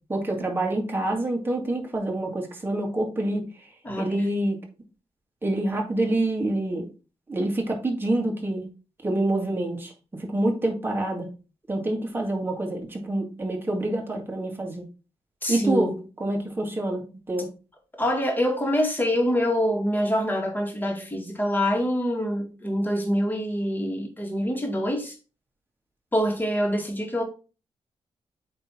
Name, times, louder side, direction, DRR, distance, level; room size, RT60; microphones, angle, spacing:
voice 1, 0.1-3.4 4.0-4.6 5.4-6.9 7.3-8.6 9.0-9.9 10.2-11.3 11.7-14.8 15.5-15.9 16.2-17.0 17.3-17.5, right 1 dB, 20° right, 2.0 m, -26 dB
voice 2, 3.8-4.3 15.4-16.0 18.0-25.2 26.1-27.2, equal, 15° left, 2.1 m, -25 dB
8.6 x 3.4 x 4.4 m
wide cardioid pair, 115°, 11 cm